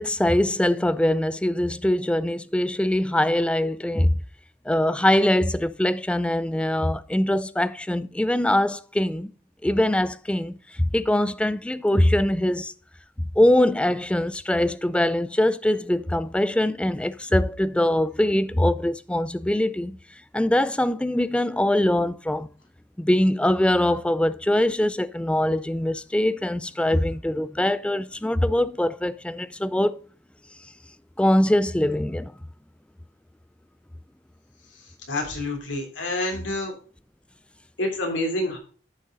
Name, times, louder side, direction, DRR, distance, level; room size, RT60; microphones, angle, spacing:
voice 1, 0.0-4.1 4.7-9.3 9.6-12.7 13.4-20.0 20.3-22.5 23.0-30.0 31.2-32.3, left 1 dB, 5° left, 0.3 m, -22 dB
voice 2, 35.1-36.7 37.8-38.6, left 1 dB, 80° left, 3.3 m, -27 dB
10.5 x 6.5 x 3.9 m
head